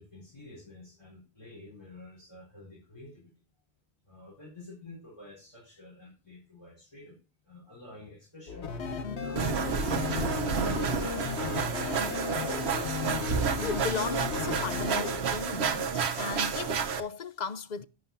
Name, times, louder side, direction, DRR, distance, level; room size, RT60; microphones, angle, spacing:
voice 1, 0.0-3.3 4.0-7.2 7.4-8.7 9.1-11.3, left 1 dB, 25° left, 4.4 m, -49 dB
sound 1, 8.5-15.5, left 4 dB, 75° left, 1.5 m, -41 dB
sound 2, 8.6-15.1, left 6 dB, 90° left, 1.3 m, -36 dB
sound 3, 9.4-17.0, right 6 dB, 75° right, 1.1 m, -30 dB
voice 2, 13.6-17.8, left 6 dB, 50° left, 0.7 m, -36 dB
11.0 x 8.9 x 2.6 m
omnidirectional pair, 1.1 m